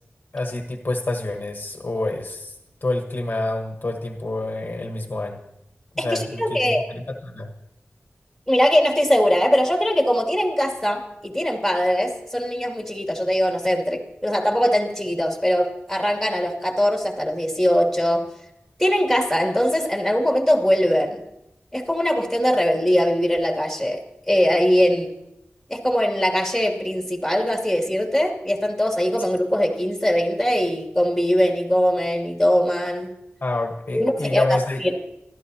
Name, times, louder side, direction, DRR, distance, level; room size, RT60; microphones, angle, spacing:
voice 1, 0.3-2.5 2.8-5.4 6.0-7.5 33.4-34.8, left 2 dB, 50° left, 4 dB, 1.2 m, -27 dB
voice 2, 6.0-6.8 8.5-18.2 18.8-21.2 21.7-25.1 25.7-33.1 33.9-34.9, equal, ahead, 1 dB, 2.5 m, -21 dB
27.0 x 12.5 x 2.8 m, 0.84 s
wide cardioid pair, 85°, 4 cm